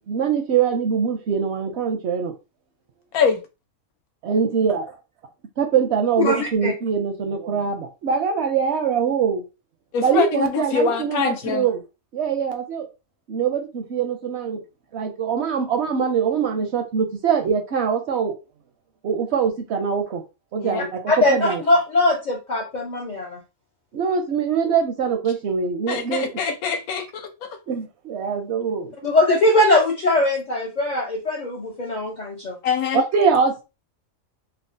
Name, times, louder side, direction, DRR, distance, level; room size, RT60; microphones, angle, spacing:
voice 1, 0.1-2.3 4.2-4.9 5.6-9.4 10.0-11.8 12.1-12.9 13.3-14.6 14.9-18.3 19.0-20.2 20.5-21.6 23.9-26.3 27.7-28.9 32.9-33.6, right 6 dB, 65° right, 0.7 m, -23 dB
voice 2, 6.2-6.7 21.1-23.4 29.0-32.6, left 2 dB, 65° left, 0.4 m, -21 dB
voice 3, 9.9-11.7 20.6-20.8 25.9-27.5 32.6-33.0, left 6 dB, 90° left, 1.2 m, -24 dB
3.6 x 2.0 x 2.5 m
omnidirectional pair, 1.5 m